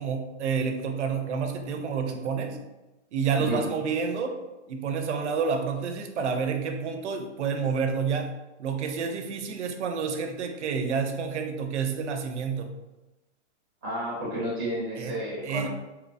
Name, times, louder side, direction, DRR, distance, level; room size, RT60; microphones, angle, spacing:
voice 1, 0.0-2.6 3.1-4.4 4.7-8.3 8.6-12.7 15.0-15.2 15.4-15.7, right 5 dB, 70° right, 6 dB, 0.5 m, -29 dB
voice 2, 13.8-15.7, right 1 dB, 20° right, -6 dB, 0.5 m, -31 dB
2.9 x 2.1 x 2.5 m, 1.0 s
hypercardioid pair, 180°, 36 cm